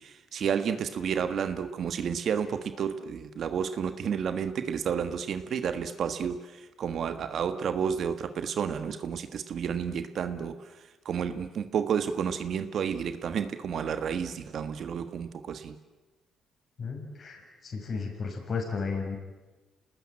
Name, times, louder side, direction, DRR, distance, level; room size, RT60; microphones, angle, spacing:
voice 1, 0.0-10.6 11.0-15.7, right 7 dB, 65° right, 9 dB, 1.5 m, -31 dB
voice 2, 16.8-19.2, left 4 dB, 50° left, 3 dB, 6.4 m, -34 dB
27.5 x 19.5 x 8.9 m, 1.2 s
cardioid pair, 90°, 0 cm